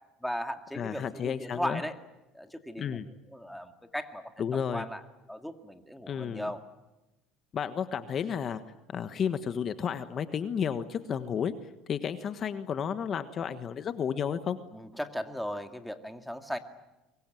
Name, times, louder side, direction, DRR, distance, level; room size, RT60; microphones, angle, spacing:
voice 1, 0.2-1.9 2.3-3.0 3.3-4.4 4.7-5.0 5.3-6.6 14.7-16.6, equal, ahead, 6 dB, 2.1 m, -37 dB
voice 2, 0.7-1.8 2.8-3.1 4.4-4.9 6.1-6.5 7.5-8.6 8.9-11.5 11.9-14.6, left 7 dB, 40° left, 10 dB, 1.4 m, -32 dB
24.5 x 22.5 x 9.2 m, 1.0 s
cardioid pair, 120°, 0 cm